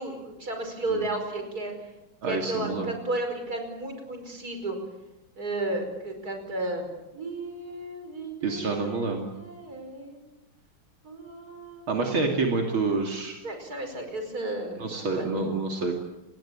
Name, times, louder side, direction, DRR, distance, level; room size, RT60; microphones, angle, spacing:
voice 1, 0.0-1.7 2.2-4.8 5.4-6.9 7.1-10.2 11.0-12.4 12.8-13.0 13.4-15.3, right 2 dB, 45° right, 5 dB, 5.6 m, -34 dB
voice 2, 2.2-3.0 8.4-9.3 11.9-13.4 14.8-15.9, right 3 dB, 75° right, 1 dB, 3.5 m, -28 dB
29.5 x 20.5 x 8.8 m, 0.98 s
omnidirectional pair, 2.3 m